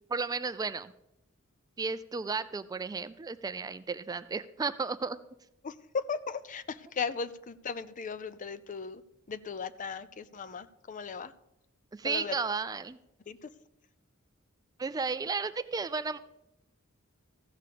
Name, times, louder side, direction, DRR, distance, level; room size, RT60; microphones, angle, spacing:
voice 1, 0.1-0.9 1.8-5.2 11.9-13.0 14.8-16.2, right 4 dB, 15° right, 13 dB, 0.3 m, -33 dB
voice 2, 5.6-9.0 9.3-11.3 12.0-12.3 13.3-13.4, left 5 dB, 40° left, 15 dB, 0.5 m, -37 dB
14.5 x 6.6 x 5.1 m, 0.88 s
head